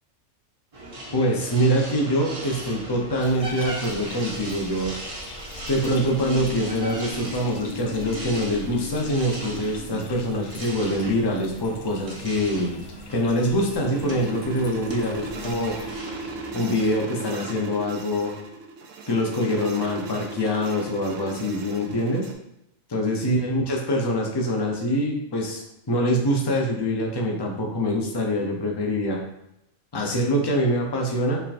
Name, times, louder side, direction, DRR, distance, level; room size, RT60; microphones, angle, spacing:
sound 1, 0.7-16.9, right 1 dB, 35° right, 0.6 m, -37 dB
voice 1, 1.1-5.0 5.7-12.8 13.1-15.7 16.5-18.3 19.1-22.3 22.9-29.2 29.9-31.4, equal, 30° left, 0 dB, 0.5 m, -24 dB
sound 2, 3.2-16.0, left 2 dB, 80° left, 0.4 m, -44 dB
sound 3, 12.9-22.3, right 3 dB, 90° right, 1.1 m, -37 dB
5.8 x 3.4 x 2.5 m, 0.82 s
omnidirectional pair, 1.4 m